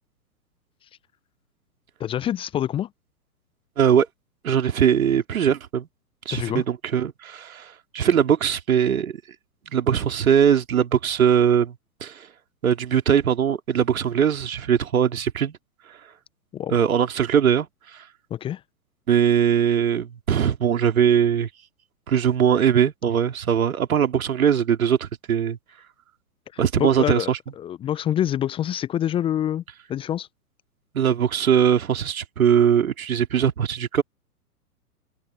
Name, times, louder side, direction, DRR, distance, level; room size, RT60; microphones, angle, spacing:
voice 1, 2.0-2.9 6.3-6.6 16.5-16.7 18.3-18.6 26.8-29.6 29.9-30.3, left 11 dB, 10° left, 0.7 m, -26 dB
voice 2, 3.8-4.1 4.4-5.9 6.2-9.2 9.7-12.3 12.6-15.6 15.9-16.0 16.7-18.1 19.1-21.5 22.1-25.6 26.6-27.4 30.9-34.0, right 8 dB, 60° right, 2.8 m, -21 dB
figure-of-eight pair, 110°, 47 cm